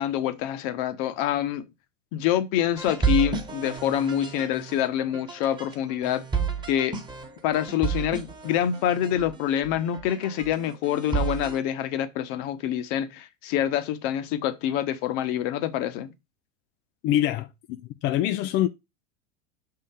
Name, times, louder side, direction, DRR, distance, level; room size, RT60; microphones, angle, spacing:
voice 1, 0.0-1.7 2.1-6.3 6.7-7.0 7.4-16.1, left 11 dB, 50° left, 1.0 m, -26 dB
sound 1, 2.8-11.6, right 6 dB, 10° right, 1.4 m, -31 dB
voice 2, 17.0-18.7, left 12 dB, 30° left, 0.4 m, -25 dB
6.2 x 3.8 x 5.7 m
hypercardioid pair, 105°, 38 cm